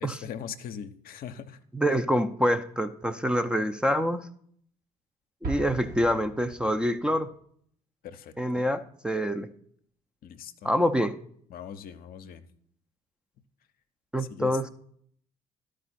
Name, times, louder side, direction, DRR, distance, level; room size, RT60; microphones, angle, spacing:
voice 1, 0.0-1.6 8.0-8.6 10.2-10.8 11.5-12.4 14.2-14.7, left 8 dB, 50° left, 9 dB, 0.7 m, -41 dB
voice 2, 1.7-4.3 5.4-7.3 8.4-9.5 10.6-11.1 14.1-14.7, equal, 5° right, 5 dB, 0.6 m, -26 dB
Explosion, 5.4-7.3, right 4 dB, 50° right, 1.3 m, -38 dB
12.5 x 5.0 x 4.2 m, 0.63 s
hypercardioid pair, 55°, 19 cm